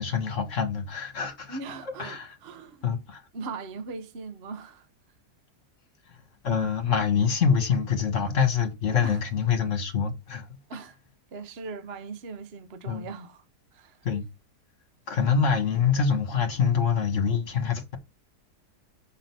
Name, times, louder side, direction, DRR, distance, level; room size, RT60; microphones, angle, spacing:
voice 1, 0.0-2.4 2.8-3.2 6.1-10.5 12.9-13.1 14.0-14.3 15.1-18.0, left 6 dB, 50° left, 1.9 m, -25 dB
voice 2, 1.5-2.9 3.3-4.9 9.0-9.2 10.7-11.0 11.3-13.4 13.7-14.0, right 4 dB, 45° right, 1.0 m, -39 dB
6.6 x 3.9 x 6.0 m
omnidirectional pair, 1.7 m